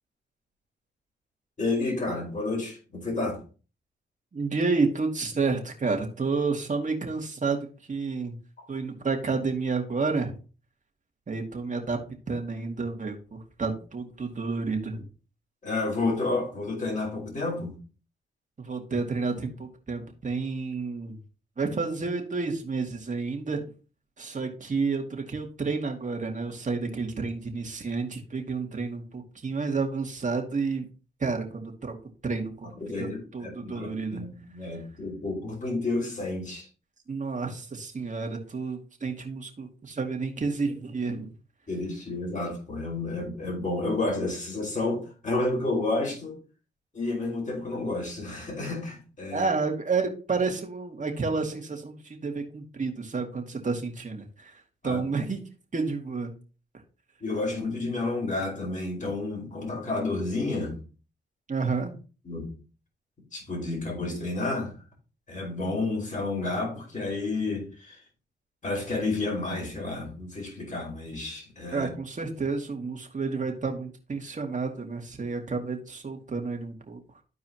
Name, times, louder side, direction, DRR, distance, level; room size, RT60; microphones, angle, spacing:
voice 1, 1.6-3.4 8.6-8.7 15.6-17.8 32.8-36.7 41.7-46.4 46.9-49.5 54.8-55.0 57.2-60.8 62.2-62.6 63.3-64.8 65.3-68.0 68.6-71.9, left 2 dB, 40° left, 4.9 m, -30 dB
voice 2, 4.3-8.4 8.7-10.3 11.3-12.0 12.3-15.1 18.6-21.2 21.6-23.7 24.2-30.9 31.2-31.9 32.2-32.7 33.0-33.1 33.3-34.2 37.1-41.3 49.3-55.4 55.7-56.3 61.5-62.0 71.7-77.0, right 4 dB, 40° right, 2.1 m, -30 dB
14.0 x 4.7 x 2.9 m
cardioid pair, 75°, 20 cm